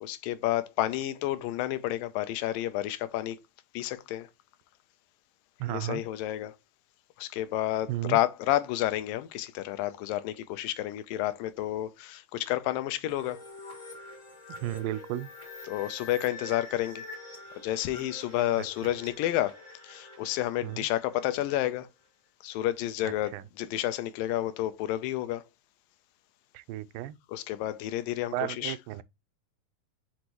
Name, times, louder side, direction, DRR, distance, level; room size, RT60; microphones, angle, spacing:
voice 1, 0.0-3.4 3.7-4.3 5.7-6.5 7.2-13.4 15.7-17.1 17.6-19.6 19.8-21.9 22.4-25.4 27.3-28.7, left 14 dB, 85° left, 2.4 m, -30 dB
voice 2, 5.6-6.0 7.9-8.2 14.6-15.3 18.6-18.7 20.6-20.9 23.0-23.4 26.5-27.2 28.3-29.0, right 15 dB, 85° right, 2.3 m, -34 dB
sound 1, 13.1-21.7, left 2 dB, 15° left, 2.1 m, -46 dB
6.4 x 5.2 x 2.9 m
omnidirectional pair, 4.0 m